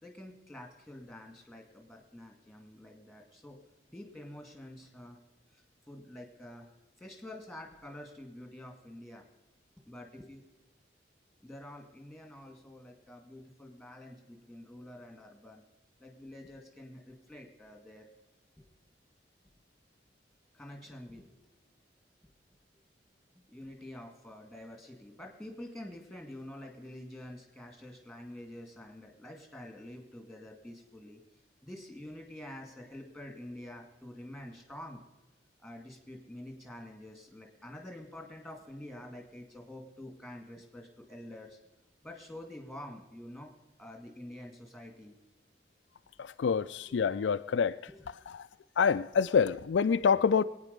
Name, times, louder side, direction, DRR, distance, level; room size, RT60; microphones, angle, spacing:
voice 1, 0.0-3.6 3.9-5.2 5.5-6.7 7.0-9.2 9.8-10.4 11.4-15.6 16.0-18.1 18.6-18.7 20.5-21.4 23.5-31.2 31.6-35.0 35.6-41.6 42.0-43.5 43.8-45.2 46.9-47.1 47.9-48.0, left 1 dB, ahead, 2 dB, 2.2 m, -47 dB
voice 2, 46.2-47.8 48.8-50.4, left 6 dB, 80° left, 12 dB, 0.4 m, -26 dB
22.0 x 9.0 x 5.3 m, 1.0 s
head